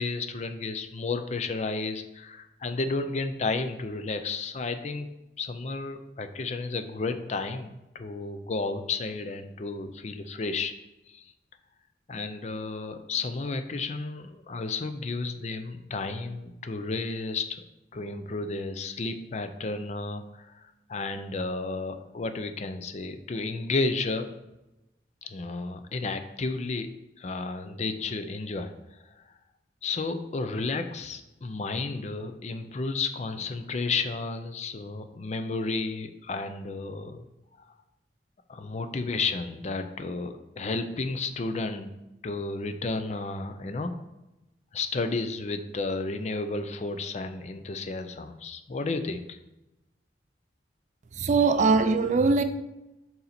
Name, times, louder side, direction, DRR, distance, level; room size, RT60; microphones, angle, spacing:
voice 1, 0.0-5.1 5.4-10.7 11.1-11.3 12.1-17.6 17.9-24.3 25.2-26.9 27.2-29.2 29.8-37.3 38.5-41.9 42.2-44.0 44.7-49.4 51.2-51.6, left 3 dB, 40° left, 0.4 m, -32 dB
voice 2, 51.2-52.4, right 4 dB, 40° right, 0.4 m, -21 dB
6.7 x 4.1 x 4.2 m
head